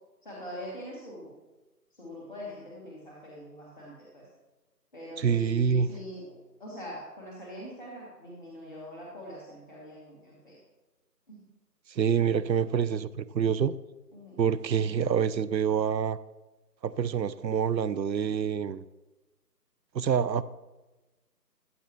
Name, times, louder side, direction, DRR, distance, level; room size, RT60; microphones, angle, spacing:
voice 1, 0.2-1.3 1.9-4.3 4.9-10.6 11.3-11.4 14.1-14.5, equal, 30° left, -6 dB, 1.5 m, -43 dB
voice 2, 5.2-5.9 11.9-13.7 14.4-16.2 16.8-18.8 19.9-20.4, right 7 dB, 90° right, 17 dB, 0.6 m, -26 dB
13.5 x 7.2 x 3.0 m, 1.1 s
figure-of-eight pair, 160°, 50 cm